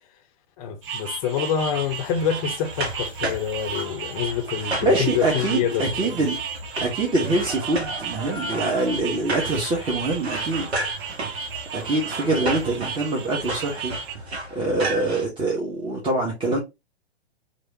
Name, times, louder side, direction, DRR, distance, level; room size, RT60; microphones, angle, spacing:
voice 1, 0.6-6.1, left 8 dB, 35° left, 0.6 m, -26 dB
sound 1, 0.8-14.2, right 5 dB, 55° right, 0.8 m, -34 dB
sound 2, 1.6-15.3, right 1 dB, 70° right, 1.2 m, -34 dB
voice 2, 4.6-6.4 6.8-10.9 11.7-13.9 14.5-16.6, right 2 dB, 15° right, 1.1 m, -24 dB
3.3 x 2.5 x 4.1 m
figure-of-eight pair, 120°, 33 cm